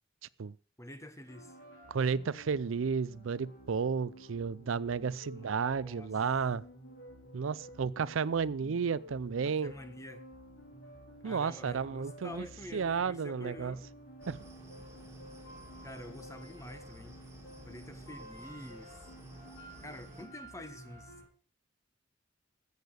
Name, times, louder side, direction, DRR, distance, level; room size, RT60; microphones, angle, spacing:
voice 1, 0.8-1.6 5.4-6.1 9.4-10.3 11.2-13.9 15.8-17.2 17.6-19.1 19.8-21.1, left 1 dB, 15° left, 1.2 m, -47 dB
sound 1, 1.3-21.2, equal, 70° left, 5.2 m, -52 dB
voice 2, 1.9-6.6 7.3-9.7 11.2-12.5 12.7-13.8 14.3-14.4, right 6 dB, 80° right, 0.5 m, -32 dB
sound 2, 14.2-20.3, right 1 dB, 15° right, 2.3 m, -54 dB
13.5 x 8.2 x 6.5 m
head